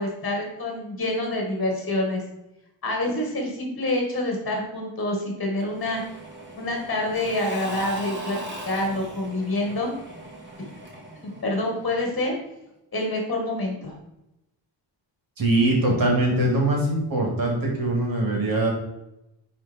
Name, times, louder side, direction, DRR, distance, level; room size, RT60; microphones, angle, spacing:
voice 1, 0.0-2.2 2.8-6.0 6.6-8.4 8.6-9.9 10.6-10.7 11.1-12.3 12.9-13.9, left 1 dB, 30° left, 0 dB, 2.1 m, -27 dB
Engine / Mechanisms / Drill, 5.6-12.3, right 2 dB, 25° right, 2.3 m, -39 dB
voice 2, 15.4-18.7, right 1 dB, 45° right, -1 dB, 3.2 m, -22 dB
10.5 x 4.3 x 4.5 m, 0.90 s
wide cardioid pair, 135°, 46 cm